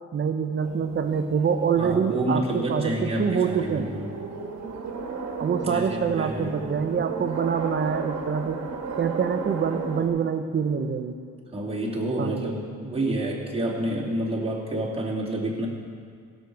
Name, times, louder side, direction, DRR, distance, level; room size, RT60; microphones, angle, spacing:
voice 1, 0.1-3.9 5.4-8.6 9.0-11.1 12.2-12.5, right 6 dB, 35° right, 8 dB, 0.9 m, -25 dB
sound 1, 0.6-10.1, right 4 dB, 60° right, 1.6 m, -35 dB
voice 2, 1.8-4.1 5.6-6.6 11.5-15.7, right 1 dB, 20° right, -5 dB, 2.4 m, -29 dB
16.5 x 6.6 x 4.7 m, 2.2 s
cardioid pair, 90°, 30 cm